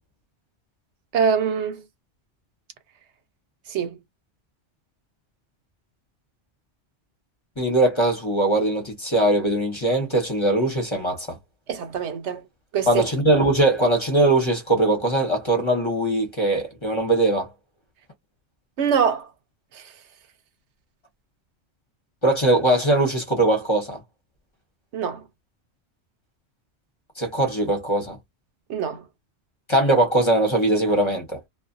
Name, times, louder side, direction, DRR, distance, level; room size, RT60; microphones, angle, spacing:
voice 1, 1.1-1.8 3.7-4.0 11.7-12.4 12.7-13.1 18.8-19.3 19.7-19.9 24.9-25.2 28.7-29.0, right 7 dB, 85° right, 1.0 m, -24 dB
voice 2, 7.6-11.4 12.9-17.5 22.2-24.0 27.2-28.2 29.7-31.4, right 1 dB, 30° left, 1.0 m, -21 dB
2.5 x 2.4 x 2.5 m
omnidirectional pair, 1.1 m